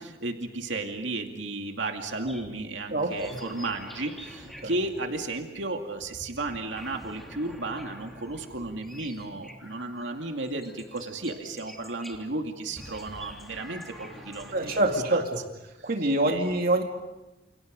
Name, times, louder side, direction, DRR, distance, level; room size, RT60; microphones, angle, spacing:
voice 1, 0.0-15.2 15.8-15.9 16.3-16.5, right 2 dB, 80° right, 3 dB, 2.4 m, -34 dB
sound 1, 1.8-12.2 12.7-15.0, equal, ahead, 3.2 m, -47 dB
voice 2, 2.9-3.3 4.6-4.7 14.5-15.4 15.8-16.8, right 1 dB, 55° right, 3 dB, 2.4 m, -25 dB
29.5 x 28.0 x 5.3 m, 1.1 s
head